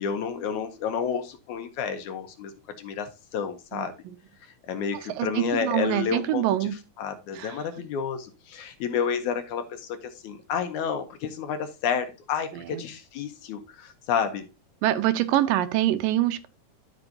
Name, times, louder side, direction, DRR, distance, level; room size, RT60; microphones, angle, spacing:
voice 1, 0.0-2.5 2.8-3.9 4.4-6.7 7.0-14.5, left 7 dB, 75° left, 2.0 m, -30 dB
voice 2, 3.7-4.2 5.2-6.7 7.3-7.6 12.5-12.9 14.8-16.5, right 14 dB, 85° right, 2.4 m, -25 dB
13.0 x 5.3 x 2.7 m
omnidirectional pair, 4.0 m